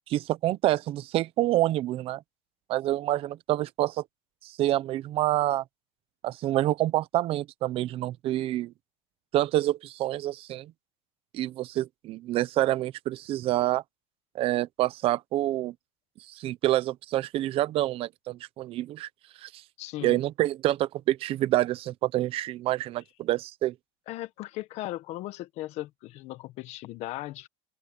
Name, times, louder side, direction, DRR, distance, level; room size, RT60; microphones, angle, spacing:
voice 1, 0.1-2.2 2.7-4.0 4.4-5.6 6.2-8.7 9.3-10.7 11.3-13.8 14.3-15.7 16.3-19.1 19.4-19.5 20.0-23.7, right 15 dB, 40° right, 0.8 m, -27 dB
voice 2, 19.8-20.2 24.1-27.5, left 17 dB, 50° left, 1.3 m, -37 dB
open air
cardioid pair, 155°, 14 cm